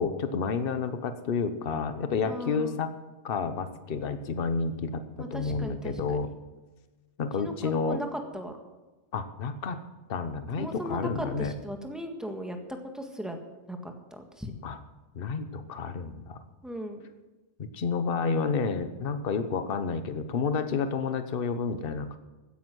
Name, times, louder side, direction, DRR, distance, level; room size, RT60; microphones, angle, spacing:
voice 1, 0.0-2.9 3.2-6.3 7.2-8.0 9.1-9.8 10.1-11.5 14.6-14.8 15.1-16.4 17.6-22.2, left 5 dB, 50° left, 10 dB, 1.1 m, -30 dB
voice 2, 2.2-2.8 5.2-6.3 7.4-8.6 10.6-12.6 12.9-13.4 13.7-14.5 16.6-17.1, equal, ahead, 3 dB, 1.6 m, -37 dB
16.0 x 9.9 x 6.2 m, 1.2 s
omnidirectional pair, 1.3 m